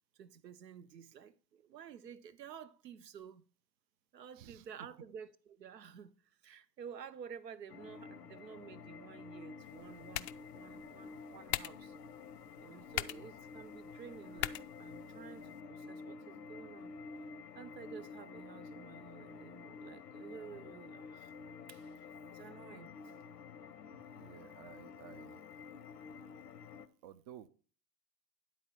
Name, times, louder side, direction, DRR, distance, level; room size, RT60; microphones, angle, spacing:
voice 1, 0.1-3.4 4.1-11.9 12.6-16.9 17.5-21.3 21.7-22.0 22.3-23.2, right 7 dB, 80° right, 0.8 m, -52 dB
sound 1, 7.7-26.9, left 4 dB, 75° left, 0.9 m, -50 dB
sound 2, 9.6-15.6, left 16 dB, 45° left, 0.4 m, -44 dB
voice 2, 12.9-13.2 24.2-25.4 27.0-27.5, right 10 dB, 25° right, 0.3 m, -54 dB
10.0 x 4.1 x 5.5 m
figure-of-eight pair, 90°, 49 cm